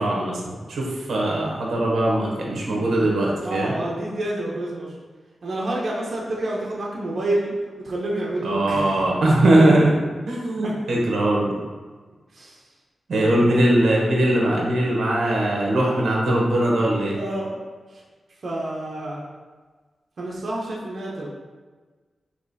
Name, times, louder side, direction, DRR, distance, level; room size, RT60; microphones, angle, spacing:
voice 1, 0.0-3.7 8.4-10.0 10.3-11.5 13.1-17.2, right 1 dB, 85° right, -2 dB, 0.8 m, -20 dB
voice 2, 2.7-3.0 3.4-5.0 5.4-7.5 7.8-9.0 10.6-10.7 12.3-12.7 13.2-13.6 14.8-15.1 16.9-17.6 17.9-18.0 18.4-19.2 20.2-21.3, right 1 dB, 50° right, -5 dB, 0.6 m, -29 dB
4.8 x 3.0 x 2.7 m, 1.4 s
wide cardioid pair, 160°, 0 cm